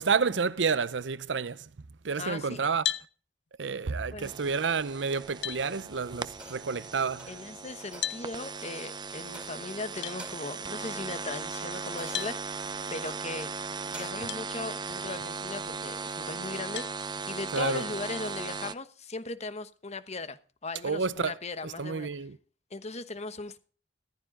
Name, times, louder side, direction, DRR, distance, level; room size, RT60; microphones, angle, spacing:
voice 1, 0.0-1.7 2.0-2.9 3.6-7.4 17.5-17.8 20.8-21.3 21.6-22.4, right 5 dB, 85° right, 0.7 m, -29 dB
voice 2, 2.2-2.6 4.1-4.3 7.3-12.5 12.9-13.5 13.9-16.9 17.3-22.1 22.7-23.6, left 3 dB, 40° left, 1.1 m, -38 dB
sound 1, 2.8-3.1 4.8-4.9 5.4-5.6 8.0-8.2 10.0-10.2 12.1-12.4 14.3-14.4 15.1-15.2 16.8-17.0, left 11 dB, 65° left, 0.9 m, -33 dB
sound 2, 4.2-18.7, right 4 dB, 25° right, 0.7 m, -38 dB
sound 3, 6.3-6.8 7.2-7.4 7.8-8.2 8.6-8.8 9.3-9.8 10.1-10.6 11.0-14.3 14.8-15.0, right 1 dB, 5° right, 4.5 m, -50 dB
14.5 x 14.0 x 3.7 m
head